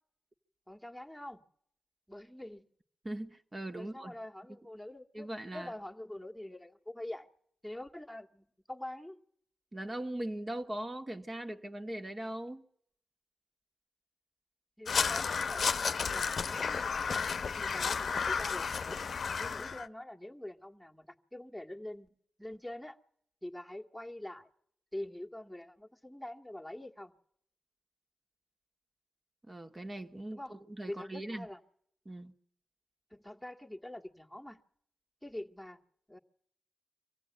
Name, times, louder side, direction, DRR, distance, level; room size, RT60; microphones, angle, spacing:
voice 1, 0.7-1.4 2.1-2.7 3.8-7.3 7.6-9.2 14.8-19.1 19.4-22.1 22.4-23.0 23.4-24.5 24.9-27.1 30.3-30.6 30.9-31.6 33.1-34.6 35.2-35.8 36.1-36.2, left 1 dB, ahead, 2.1 m, -45 dB
voice 2, 3.0-4.1 5.1-5.7 9.7-12.7 29.5-31.5 32.1-32.3, right 1 dB, 30° right, 2.0 m, -40 dB
Crow, 14.9-19.9, left 5 dB, 65° left, 0.8 m, -32 dB
25.0 x 16.0 x 9.5 m
supercardioid pair, 45°, 0 cm